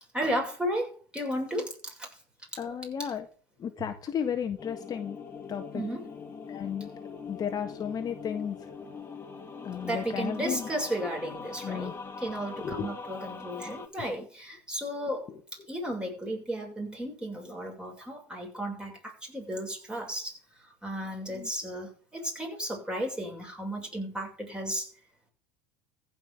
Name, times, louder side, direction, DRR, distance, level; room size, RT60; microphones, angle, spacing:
voice 1, 0.0-2.1 2.5-2.6 5.7-6.0 9.8-11.9 12.2-15.3 15.7-20.4 20.8-24.9, equal, 10° right, 1 dB, 6.6 m, -34 dB
voice 2, 2.6-3.2 3.6-5.2 5.5-5.8 6.5-6.9 7.3-8.6 9.6-10.7 11.6-11.9 12.6-12.9 21.3-21.5, left 8 dB, 35° left, 6 dB, 1.6 m, -33 dB
sound 1, 4.6-13.9, left 5 dB, 20° left, 2.8 m, -42 dB
15.0 x 5.8 x 8.7 m, 0.41 s
hypercardioid pair, 95°, 11 cm